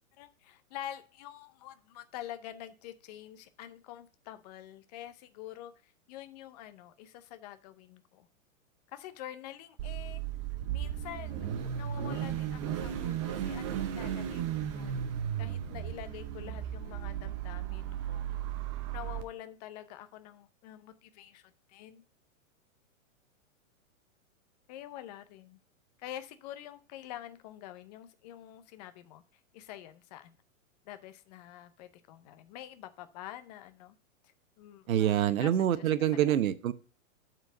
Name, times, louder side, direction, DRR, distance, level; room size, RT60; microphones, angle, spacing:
voice 1, 0.2-5.7 6.1-8.3 8.9-10.2 10.7-15.1 15.4-18.2 18.9-21.4 21.7-22.0 24.7-25.6 26.0-29.2 29.5-30.4 30.9-34.0 34.6-36.3, left 12 dB, 30° left, 11 dB, 0.6 m, -46 dB
Car / Idling / Accelerating revving vroom, 9.8-19.2, right 10 dB, 25° right, 0.6 m, -35 dB
voice 2, 34.9-36.7, right 11 dB, 80° right, 13 dB, 0.9 m, -26 dB
7.7 x 4.6 x 6.1 m, 0.38 s
hypercardioid pair, 155°, 41 cm